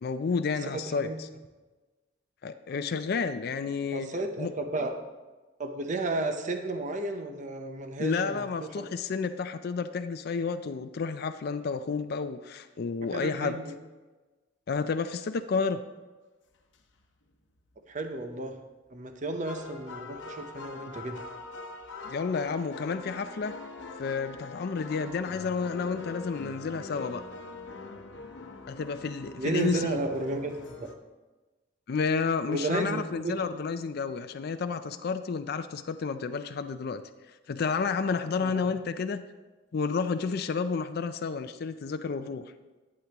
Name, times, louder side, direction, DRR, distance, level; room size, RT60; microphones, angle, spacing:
voice 1, 0.0-1.3 2.4-4.1 4.4-4.5 8.0-13.6 14.7-15.8 22.0-23.6 24.0-27.3 28.7-30.0 31.9-37.0 37.5-39.2 39.7-42.5, left 5 dB, 55° left, 9 dB, 0.4 m, -31 dB
voice 2, 0.7-1.2 3.9-4.9 5.6-8.9 13.1-13.7 17.9-18.5 18.9-21.2 29.4-30.5 30.8-30.9 32.5-33.4 38.4-38.6, right 2 dB, 40° right, 6 dB, 0.8 m, -33 dB
sound 1, 16.7-17.0 17.6-17.7 19.1-19.2 19.4-30.9, left 3 dB, 70° left, 0.9 m, -43 dB
11.5 x 8.7 x 2.9 m, 1.2 s
head